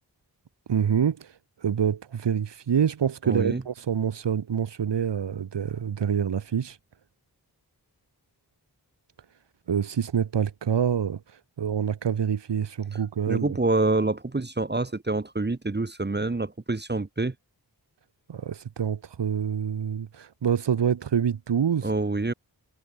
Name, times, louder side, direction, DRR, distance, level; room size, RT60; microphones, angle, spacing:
voice 1, 0.7-1.3 1.6-6.8 9.7-11.2 11.6-13.6 18.3-21.9, right 8 dB, 90° right, 1.0 m, -26 dB
voice 2, 3.2-3.6 13.3-17.3 21.8-22.3, right 2 dB, 25° right, 1.1 m, -26 dB
wide cardioid pair, 75°, 41 cm